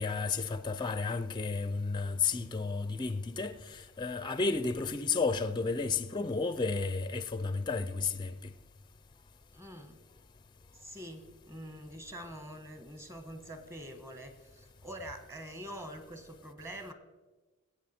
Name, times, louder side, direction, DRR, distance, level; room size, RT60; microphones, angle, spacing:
voice 1, 0.0-8.3, left 4 dB, 20° left, 0.4 m, -32 dB
voice 2, 9.5-10.0 10.8-16.9, equal, 15° right, 1.2 m, -45 dB
20.0 x 8.1 x 4.3 m
head